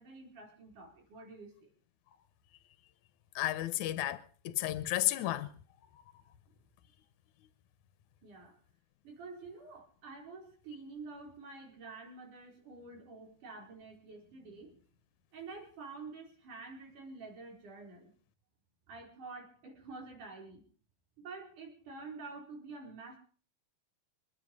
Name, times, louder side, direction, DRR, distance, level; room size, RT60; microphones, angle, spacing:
voice 1, 0.0-1.7 8.2-8.6 9.0-14.8 15.3-18.1 18.9-20.6 21.2-23.2, right 3 dB, 70° right, 6.2 m, -48 dB
voice 2, 3.4-5.5, left 14 dB, 75° left, 2.3 m, -32 dB
26.0 x 10.0 x 5.4 m
omnidirectional pair, 3.7 m